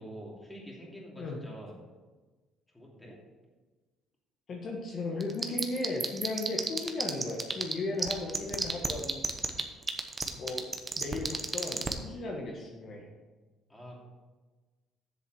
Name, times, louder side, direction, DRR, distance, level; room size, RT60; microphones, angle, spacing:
voice 1, 0.0-1.7 2.7-3.2 11.0-11.2 13.7-14.0, right 1 dB, 5° left, -3 dB, 2.7 m, -46 dB
voice 2, 4.5-9.2 10.4-10.7 11.0-13.1, left 2 dB, 45° left, -1 dB, 1.4 m, -36 dB
sound 1, 5.2-7.7 8.0-11.9, right 3 dB, 20° right, 0.9 m, -29 dB
7.8 x 6.9 x 6.3 m, 1.3 s
cardioid pair, 135°, 0 cm